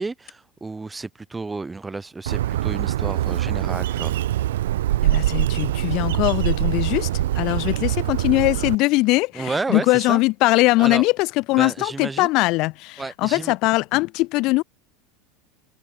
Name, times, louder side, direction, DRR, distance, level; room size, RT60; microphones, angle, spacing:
voice 1, 0.0-4.2 9.3-10.2 10.8-11.1 11.6-12.3 13.0-13.5, right 3 dB, 15° right, 1.8 m, -31 dB
Bird, 2.3-8.8, right 13 dB, 80° right, 0.9 m, -23 dB
voice 2, 5.0-14.6, left 22 dB, 55° left, 0.8 m, -21 dB
hypercardioid pair, 90°, 0 cm